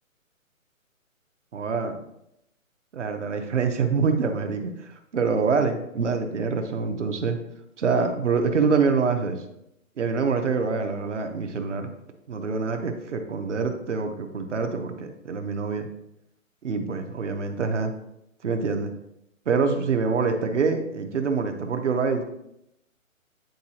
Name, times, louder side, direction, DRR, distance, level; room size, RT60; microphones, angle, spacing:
voice 1, 1.5-2.0 2.9-7.4 7.8-9.4 10.0-11.9 12.3-15.9 16.6-17.9 18.4-18.9 19.5-22.2, right 5 dB, 60° right, 6 dB, 0.9 m, -25 dB
9.4 x 3.8 x 2.9 m, 0.81 s
hypercardioid pair, 165°, 41 cm